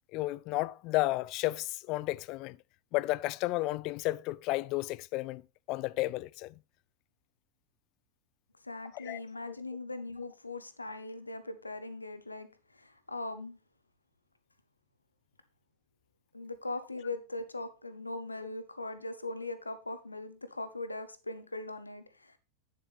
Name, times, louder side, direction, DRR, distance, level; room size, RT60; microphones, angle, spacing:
voice 1, 0.1-2.6 2.9-5.4 5.7-6.5 8.9-9.6, left 19 dB, 40° left, 0.3 m, -32 dB
voice 2, 8.6-13.6 16.3-22.4, left 2 dB, 80° left, 0.8 m, -40 dB
8.6 x 7.4 x 3.3 m
figure-of-eight pair, 90°, 0 cm